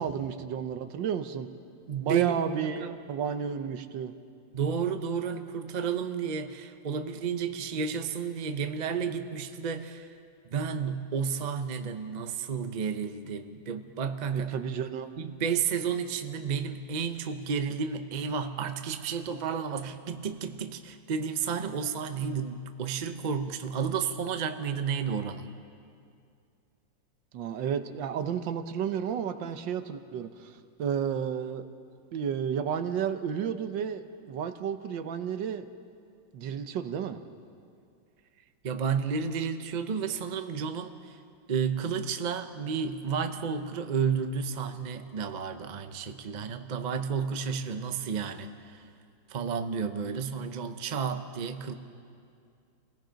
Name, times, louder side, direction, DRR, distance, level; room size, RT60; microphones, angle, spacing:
voice 1, 0.0-1.5 2.0-4.1 14.3-15.1 27.3-30.5 30.8-31.6 32.1-35.7 36.3-37.2, right 8 dB, 80° right, 9 dB, 1.6 m, -32 dB
voice 2, 1.9-3.0 4.5-10.2 10.5-14.6 15.2-25.5 38.6-41.2 41.5-48.9 49.3-51.7, right 6 dB, 45° right, 8 dB, 0.5 m, -32 dB
28.5 x 18.0 x 5.2 m, 2.4 s
omnidirectional pair, 2.0 m